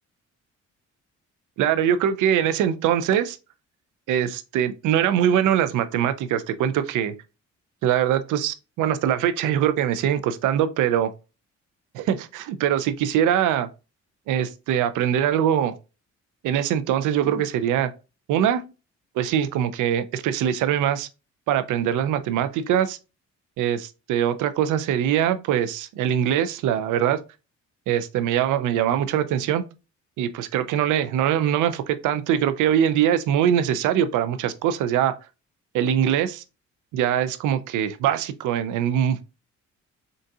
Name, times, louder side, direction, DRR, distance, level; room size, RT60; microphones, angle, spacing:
voice 1, 1.6-3.4 4.1-7.1 7.8-11.1 11.9-13.7 14.3-15.8 16.4-17.9 18.3-18.6 19.2-21.1 21.5-23.0 23.6-27.2 27.9-29.6 30.2-35.1 35.7-36.4 36.9-39.2, right 10 dB, 85° right, 0.5 m, -22 dB
3.9 x 3.8 x 2.3 m
cardioid pair, 90°, 30 cm